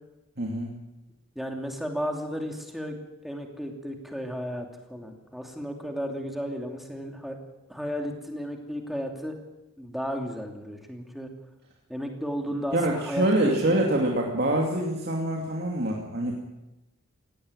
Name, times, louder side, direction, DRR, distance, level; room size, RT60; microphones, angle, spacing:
voice 1, 0.4-0.7 12.7-16.3, right 1 dB, 45° right, -1 dB, 2.7 m, -25 dB
voice 2, 1.3-7.4 7.7-9.3 9.8-11.3 11.9-13.8, equal, ahead, 2 dB, 2.8 m, -34 dB
17.5 x 17.5 x 9.8 m, 1.0 s
head